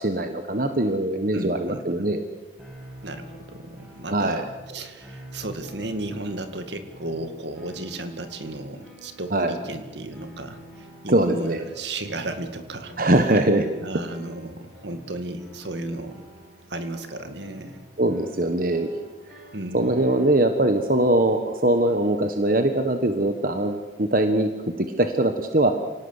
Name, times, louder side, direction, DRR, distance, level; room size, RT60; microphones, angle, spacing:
voice 1, 0.0-2.2 4.1-4.4 9.3-9.5 11.1-11.6 13.0-13.7 18.0-18.9 19.3-19.4 19.7-24.5 24.8-25.7, right 1 dB, 50° right, 7 dB, 1.3 m, -22 dB
voice 2, 1.3-2.1 3.0-13.0 13.8-16.2 16.7-17.8 19.5-20.0, right 2 dB, 70° right, 8 dB, 2.2 m, -34 dB
sound 1, 2.6-21.8, equal, 5° right, 7.7 m, -47 dB
27.0 x 18.0 x 8.1 m, 1.2 s
head